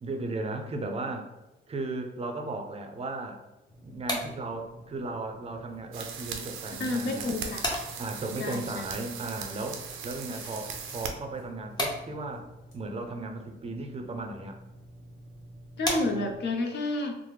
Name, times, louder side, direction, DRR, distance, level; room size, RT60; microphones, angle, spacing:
voice 1, 0.0-1.3 1.7-3.4 3.8-7.3 8.0-12.5 12.7-14.6, right 2 dB, 30° right, 4 dB, 0.5 m, -36 dB
sound 1, 3.7-16.6, left 1 dB, 20° left, 0.7 m, -39 dB
sound 2, 5.5-12.4 12.7-12.8, left 1 dB, 75° left, 1.2 m, -58 dB
sound 3, 5.9-11.1, right 6 dB, 85° right, 0.4 m, -39 dB
voice 2, 6.8-7.6 8.4-8.8 15.8-17.2, left 2 dB, 60° left, 4 dB, 0.6 m, -30 dB
3.2 x 2.0 x 3.1 m, 1.0 s
cardioid pair, 90°, 20 cm